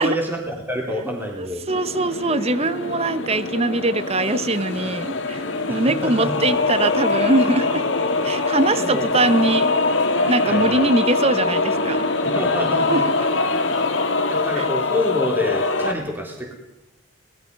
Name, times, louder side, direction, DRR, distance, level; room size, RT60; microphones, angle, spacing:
voice 1, 0.0-1.6 5.7-6.5 8.8-9.1 10.5-10.8 12.2-13.0 14.3-16.5, left 1 dB, 10° right, 0 dB, 3.5 m, -27 dB
voice 2, 1.3-7.8 8.2-9.7 10.3-12.1 12.9-13.0 14.5-14.7, right 2 dB, 30° right, 13 dB, 1.0 m, -22 dB
sound 1, 1.7-15.9, left 3 dB, 75° left, 2.1 m, -23 dB
24.5 x 20.0 x 5.4 m, 0.86 s
head